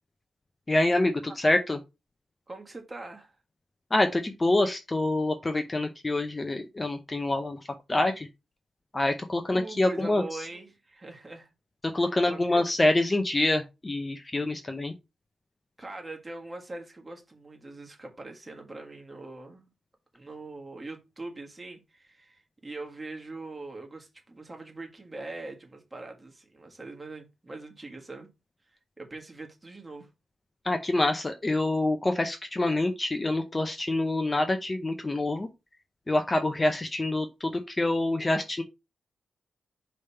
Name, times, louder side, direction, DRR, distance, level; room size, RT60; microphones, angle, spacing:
voice 1, 0.7-1.8 3.9-7.6 7.9-8.3 8.9-10.2 11.9-14.9 30.6-35.5 36.1-38.6, left 2 dB, 20° left, 0.6 m, -26 dB
voice 2, 2.5-3.3 9.4-11.5 12.3-12.6 15.8-19.7 20.1-28.3 29.0-30.1, right 2 dB, 20° right, 1.5 m, -42 dB
5.2 x 3.3 x 5.5 m
wide cardioid pair, 130°, 0 cm